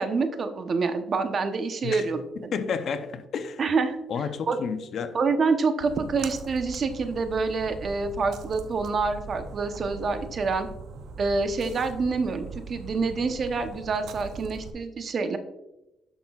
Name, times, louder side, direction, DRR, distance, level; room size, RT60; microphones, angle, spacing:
voice 1, 0.0-2.5 3.6-4.0 4.5-4.6 5.1-10.7 11.2-15.4, right 4 dB, 50° right, 8 dB, 0.8 m, -27 dB
voice 2, 2.4-3.6 4.1-5.1, left 6 dB, 65° left, 10 dB, 0.6 m, -31 dB
Splash splatter, 5.8-14.7, right 5 dB, 75° right, 0.6 m, -41 dB
10.0 x 5.9 x 2.4 m, 0.93 s
cardioid pair, 90°, 0 cm